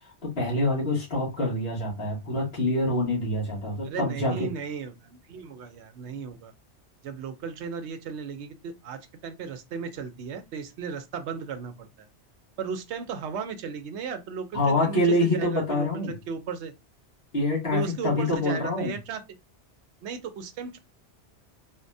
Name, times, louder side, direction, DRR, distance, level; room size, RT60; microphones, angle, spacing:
voice 1, 0.2-4.5 14.5-16.1 17.3-19.0, left 1 dB, 65° left, 1.6 m, -26 dB
voice 2, 3.8-6.5 7.0-12.1 12.6-16.7 17.7-19.2 20.0-20.8, right 6 dB, 80° right, 0.9 m, -35 dB
4.0 x 2.2 x 2.6 m
omnidirectional pair, 1.1 m